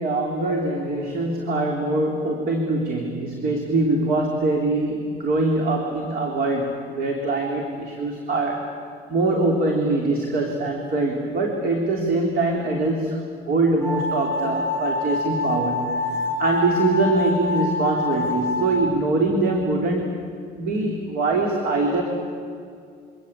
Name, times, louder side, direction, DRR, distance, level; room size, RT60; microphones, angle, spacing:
voice 1, 0.0-8.7 9.1-13.2 13.5-15.9 16.4-20.2 20.5-22.0, right 2 dB, 65° right, 2 dB, 3.6 m, -23 dB
sound 1, 13.8-18.8, left 2 dB, 85° right, 4.0 m, -26 dB
27.5 x 25.0 x 8.4 m, 2.4 s
cardioid pair, 110°, 17 cm